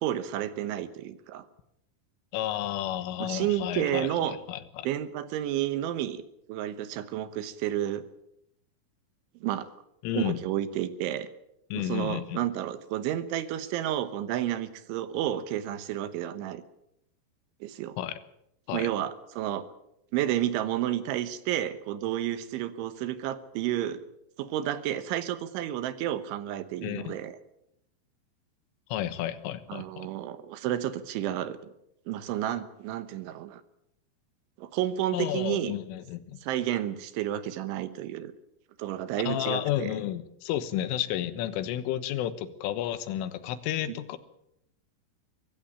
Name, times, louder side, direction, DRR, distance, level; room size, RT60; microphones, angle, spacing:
voice 1, 0.0-1.5 3.2-4.4 4.8-6.2 6.5-8.0 9.4-9.7 10.1-11.3 11.7-16.6 17.6-18.0 18.7-19.6 20.1-24.0 24.4-27.4 29.7-31.7 32.1-33.6 34.6-35.8 36.4-38.3 38.8-40.0 43.9-44.0, right 12 dB, 75° right, 13 dB, 3.3 m, -31 dB
voice 2, 2.3-4.9 10.0-10.4 11.7-12.4 18.0-18.2 18.7-18.9 26.8-27.2 28.9-30.1 35.1-36.4 39.3-44.2, left 12 dB, 80° left, 13 dB, 3.6 m, -32 dB
24.0 x 14.5 x 8.7 m, 0.80 s
omnidirectional pair, 5.8 m